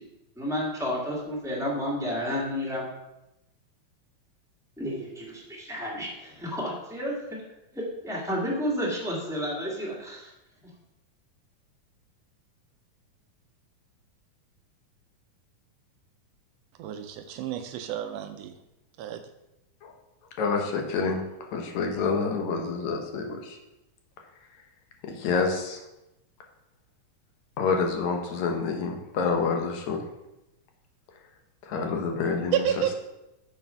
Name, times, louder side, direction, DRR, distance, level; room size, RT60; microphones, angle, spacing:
voice 1, 0.3-2.9 4.8-7.4 7.7-10.3, equal, ahead, -4 dB, 1.6 m, -31 dB
voice 2, 16.8-18.5 19.0-19.2 32.5-32.9, right 10 dB, 80° right, 8 dB, 1.5 m, -30 dB
voice 3, 20.4-21.2 21.5-23.6 25.0-25.8 27.6-30.0 31.7-32.7, left 4 dB, 75° left, 3 dB, 2.3 m, -27 dB
7.1 x 5.7 x 5.6 m, 0.92 s
omnidirectional pair, 3.4 m